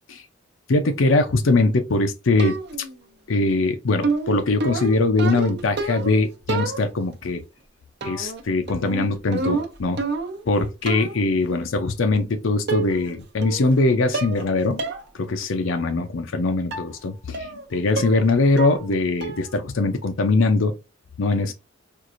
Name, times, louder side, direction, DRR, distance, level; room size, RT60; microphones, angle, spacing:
voice 1, 0.7-2.6 3.3-7.4 8.0-10.0 10.5-14.8 15.1-20.7 21.2-21.5, left 3 dB, 90° left, 0.6 m, -21 dB
sound 1, 2.4-2.9 4.0-6.2 6.5-7.1 8.0-8.4 8.7-10.5 10.9-11.2 12.2-12.3 12.7-13.1 13.4-13.8 14.1-14.5 14.8-15.0 15.4-15.5 16.7-16.9 17.3-17.6 18.0-18.3 18.6-18.9 19.2-19.5, right 4 dB, 55° right, 0.7 m, -28 dB
4.5 x 2.5 x 2.5 m
head